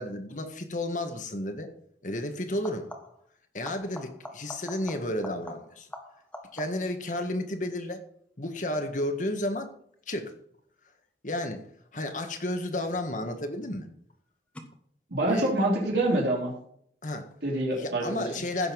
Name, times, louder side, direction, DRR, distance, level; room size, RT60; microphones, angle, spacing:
voice 1, 0.0-1.7 2.0-2.9 3.5-5.9 6.5-8.0 8.4-9.7 10.1-10.3 11.2-11.6 11.9-13.9 15.3-15.5 17.0-17.3 17.7-18.7, left 1 dB, 45° left, 6 dB, 1.6 m, -32 dB
sound 1, 1.1-1.3 2.5-3.3 3.6-7.0 12.4-13.0 14.5-14.6, left 1 dB, 5° left, 1.3 m, -45 dB
voice 2, 15.1-16.5 17.4-18.3, right 1 dB, 70° right, -3 dB, 3.1 m, -26 dB
16.0 x 6.9 x 5.3 m, 0.66 s
head